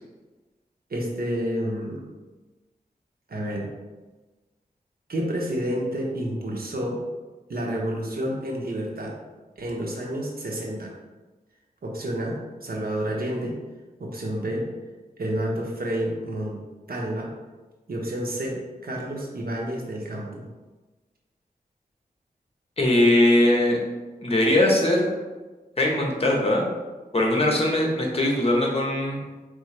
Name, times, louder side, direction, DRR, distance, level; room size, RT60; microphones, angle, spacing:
voice 1, 0.9-2.0 3.3-3.7 5.1-7.0 7.5-9.1 9.6-10.9 11.8-13.6 14.0-14.6 15.2-16.6 16.9-17.3 17.9-20.4, right 1 dB, 70° right, -2 dB, 1.0 m, -29 dB
voice 2, 22.8-23.8 24.2-25.1 25.8-26.6 27.1-29.2, left 1 dB, 40° left, 0 dB, 1.2 m, -20 dB
4.4 x 3.5 x 3.3 m, 1.2 s
cardioid pair, 55°, 16 cm